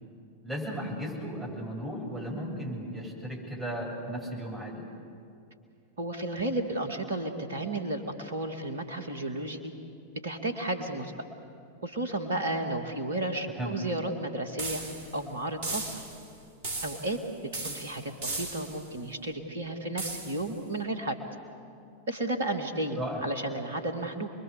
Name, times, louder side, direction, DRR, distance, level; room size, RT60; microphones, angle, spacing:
voice 1, 0.4-4.8 13.5-13.8 23.0-23.2, equal, 10° right, -2 dB, 7.5 m, -35 dB
voice 2, 6.0-9.7 10.2-11.1 11.8-14.8 15.1-15.9 16.8-17.2 17.6-21.2 22.1-24.3, right 2 dB, 65° right, 6 dB, 2.3 m, -33 dB
sound 1, 14.6-15.2 15.6-16.3 16.6-17.2 17.5-18.9 20.0-20.5, right 3 dB, 50° right, 3.3 m, -36 dB
29.0 x 21.5 x 6.9 m, 2.5 s
figure-of-eight pair, 90°, 0 cm